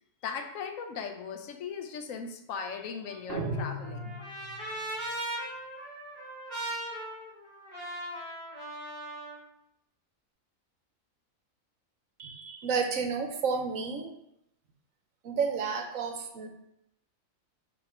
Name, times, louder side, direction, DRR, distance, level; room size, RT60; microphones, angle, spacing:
voice 1, 0.2-4.1, left 6 dB, 75° left, 5 dB, 1.1 m, -38 dB
Trumpet, 3.0-9.4, right 1 dB, 35° left, 2.5 m, -39 dB
sound 1, 3.3-4.8, right 1 dB, 50° right, 0.8 m, -36 dB
voice 2, 12.2-14.1 15.2-16.5, right 5 dB, 80° right, 4 dB, 1.2 m, -31 dB
5.5 x 4.5 x 4.3 m, 0.81 s
omnidirectional pair, 1.4 m